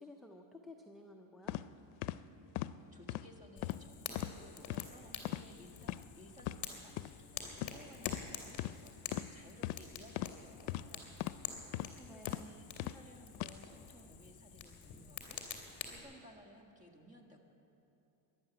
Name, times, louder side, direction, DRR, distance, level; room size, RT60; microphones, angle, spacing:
voice 1, 0.0-1.6 12.1-12.6, left 1 dB, ahead, 0 dB, 0.4 m, -53 dB
sound 1, 1.5-1.6 2.0-2.2 2.6-2.7 3.1-3.3 3.6-3.8 4.1-4.3 4.7-4.9 5.2-5.5 5.8-6.0 6.4-6.6 7.0-7.1 7.6-7.8 8.1-8.2 8.6-8.7 9.1-9.3 9.6-9.8 10.2-10.3 10.7-10.8 11.2-11.4 11.7-11.9 12.3-12.4 12.8-13.0 13.3-13.5, left 16 dB, 85° left, 0.6 m, -38 dB
voice 2, 2.9-11.2 11.6-17.4, equal, 15° right, 2 dB, 1.6 m, -58 dB
Fire, 3.6-16.0, left 7 dB, 40° left, 2.4 m, -48 dB
14.0 x 11.0 x 9.3 m, 2.9 s
cardioid pair, 155°, 47 cm